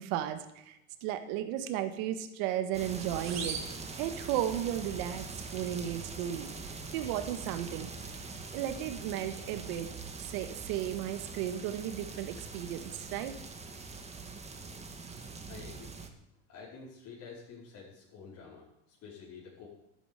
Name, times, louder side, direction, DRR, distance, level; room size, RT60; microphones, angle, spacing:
voice 1, 0.0-3.6 4.0-5.3 5.5-6.5 6.9-7.9 8.5-9.9 10.2-13.3, right 11 dB, 65° right, 9 dB, 1.9 m, -34 dB
sound 1, 2.7-16.1, right 4 dB, 15° right, 2.0 m, -43 dB
sound 2, 3.2-4.7, right 6 dB, 45° right, 3.9 m, -41 dB
voice 2, 15.5-15.9 16.5-19.7, left 5 dB, 50° left, -7 dB, 5.2 m, -49 dB
13.0 x 9.2 x 9.1 m, 0.86 s
supercardioid pair, 105°, 36 cm